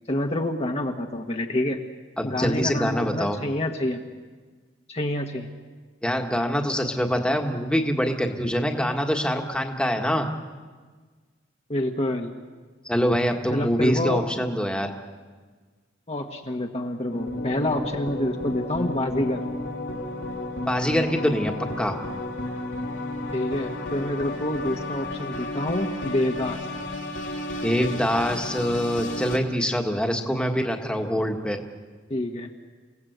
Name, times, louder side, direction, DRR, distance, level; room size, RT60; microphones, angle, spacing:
voice 1, 0.1-1.8 2.2-4.0 4.9-5.5 11.7-12.3 13.5-14.2 16.1-19.4 23.3-26.6 32.1-32.5, left 1 dB, 35° left, 2 dB, 1.4 m, -27 dB
voice 2, 2.2-3.4 6.0-10.3 12.9-14.9 20.7-22.0 27.6-31.6, equal, 5° left, 3 dB, 1.7 m, -24 dB
sound 1, 17.1-29.4, left 2 dB, 75° left, 3.1 m, -32 dB
28.5 x 17.5 x 8.1 m, 1.4 s
head